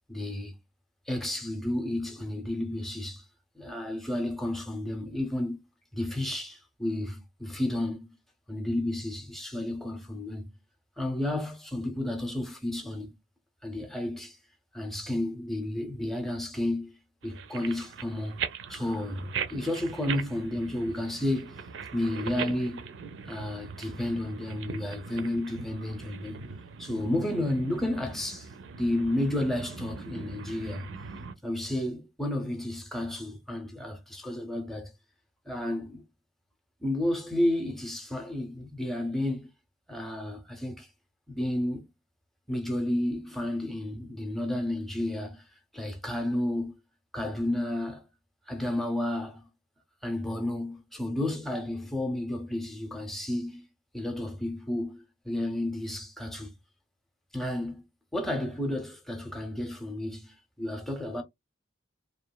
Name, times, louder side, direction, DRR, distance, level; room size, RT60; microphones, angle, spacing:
voice 1, 0.1-0.6 1.1-3.2 3.5-5.6 5.9-8.1 8.5-10.5 11.0-13.2 13.6-14.4 14.7-17.0 17.2-18.4 18.7-21.6 21.9-22.8 23.2-26.5 26.8-28.5 28.8-30.9 31.4-34.9 35.5-36.0 36.8-39.5 39.9-40.9 41.3-41.9 42.5-45.4 45.7-46.8 47.1-48.0 48.5-49.5 50.0-53.6 53.9-56.6 57.3-57.8 58.1-61.2, left 1 dB, ahead, 0.6 m, -32 dB
sound 1, 17.2-31.3, right 6 dB, 65° right, 0.4 m, -40 dB
3.0 x 2.4 x 2.2 m
head